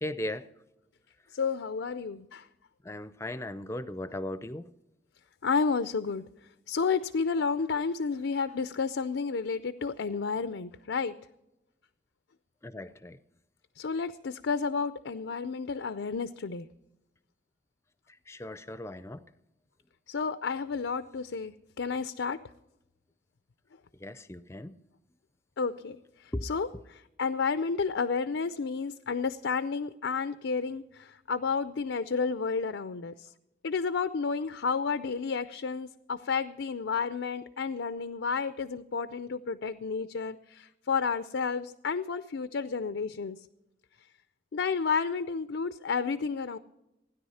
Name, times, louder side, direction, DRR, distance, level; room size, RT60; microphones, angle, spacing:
voice 1, 0.0-0.5 2.8-4.6 12.6-13.2 18.3-19.2 24.0-24.8 26.3-26.4, left 1 dB, 15° left, 0.5 m, -37 dB
voice 2, 1.3-2.5 5.4-6.3 6.7-11.2 13.8-16.7 20.1-22.4 25.6-33.3 33.6-43.4 44.5-46.6, left 5 dB, 80° left, 0.5 m, -31 dB
16.5 x 10.0 x 5.6 m
head